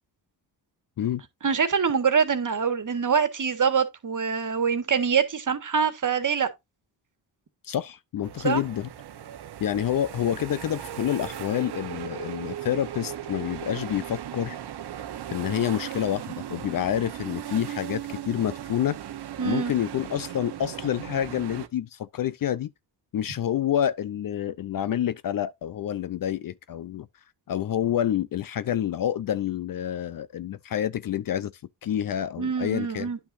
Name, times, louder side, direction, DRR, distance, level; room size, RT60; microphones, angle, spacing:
voice 1, 1.4-6.5 8.4-8.6 19.4-19.7 32.4-33.2, right 6 dB, 40° right, 1.6 m, -24 dB
voice 2, 7.6-8.9 9.6-14.6 15.3-19.0 19.4-22.7 23.1-27.1 27.5-31.5 31.8-33.1, left 10 dB, 45° left, 0.5 m, -28 dB
sound 1, 8.2-21.7, right 10 dB, 55° right, 1.0 m, -37 dB
9.9 x 5.9 x 2.6 m
supercardioid pair, 55°, 47 cm